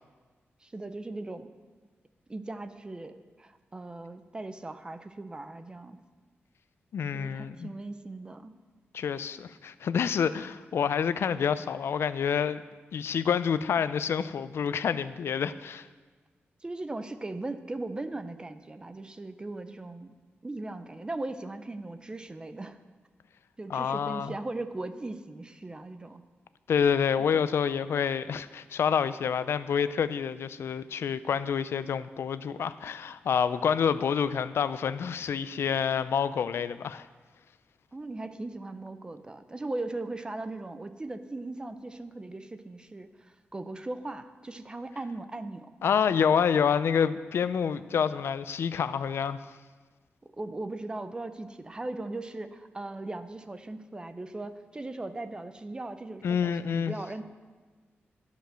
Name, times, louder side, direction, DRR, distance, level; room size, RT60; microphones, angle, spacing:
voice 1, 0.6-1.5 2.3-6.0 7.1-8.5 16.6-20.1 20.4-22.8 23.6-26.2 37.9-45.7 50.4-57.2, right 2 dB, 20° right, 10 dB, 0.5 m, -38 dB
voice 2, 6.9-7.7 8.9-12.6 12.9-15.9 23.7-24.3 26.7-37.1 45.8-49.6 56.2-56.9, left 7 dB, 70° left, 14 dB, 0.4 m, -28 dB
11.5 x 5.2 x 6.2 m, 1.4 s
wide cardioid pair, 130°, 4 cm